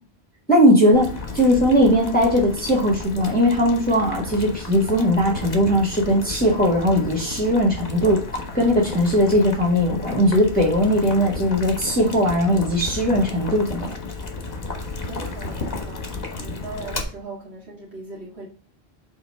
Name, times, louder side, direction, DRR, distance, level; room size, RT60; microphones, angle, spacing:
voice 1, 0.5-8.2 8.5-13.9, equal, 10° left, 1.8 m, -19 dB
Boiling, 0.9-17.0, left 3 dB, 40° left, 1.4 m, -33 dB
voice 2, 14.7-18.5, right 2 dB, 90° right, 2.5 m, -39 dB
5.7 x 3.9 x 5.6 m
omnidirectional pair, 1.1 m